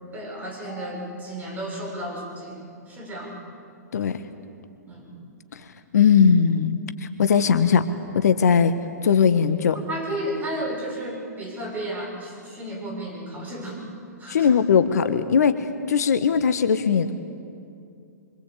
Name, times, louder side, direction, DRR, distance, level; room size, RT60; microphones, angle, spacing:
voice 1, 0.1-3.4 4.9-5.1 9.9-13.8 14.2-14.5, right 1 dB, 15° right, 0 dB, 7.0 m, -33 dB
voice 2, 5.9-7.8 8.1-8.7 9.0-9.8 14.3-17.1, left 6 dB, 65° left, 10 dB, 1.4 m, -19 dB
25.5 x 25.5 x 8.5 m, 2.5 s
figure-of-eight pair, 120°, 9 cm